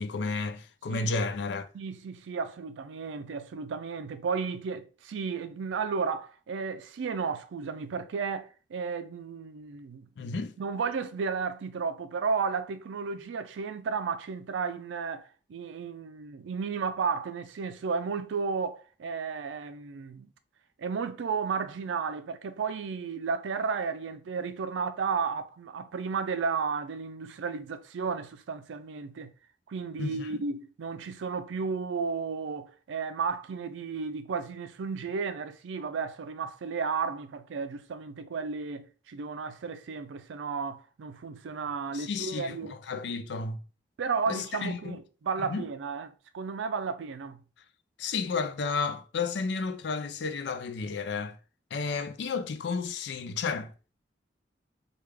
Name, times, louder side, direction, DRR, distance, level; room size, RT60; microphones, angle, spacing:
voice 1, 0.0-1.7 10.2-10.5 30.0-30.4 41.9-43.6 44.3-45.0 45.4-45.7 48.0-51.4 51.7-53.9, left 4 dB, 70° left, 0.4 m, -32 dB
voice 2, 1.7-10.1 10.6-15.2 15.5-20.3 20.8-29.3 29.7-42.8 44.0-47.4, right 5 dB, 85° right, 0.4 m, -33 dB
3.2 x 2.3 x 3.3 m
head